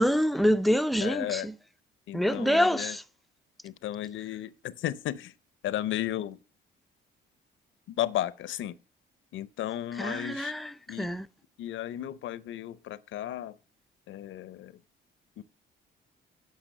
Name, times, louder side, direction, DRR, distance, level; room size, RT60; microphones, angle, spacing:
voice 1, 0.0-1.5 2.1-3.0 10.0-10.7 11.0-11.3, equal, ahead, 0.5 m, -26 dB
voice 2, 1.0-1.5 2.1-3.0 3.6-5.3 5.6-6.4 7.9-8.8 9.3-10.5 10.9-11.1 11.6-13.6 14.1-14.8 15.4-15.5, left 12 dB, 75° left, 0.7 m, -34 dB
10.5 x 5.9 x 6.6 m
cardioid pair, 90°, 20 cm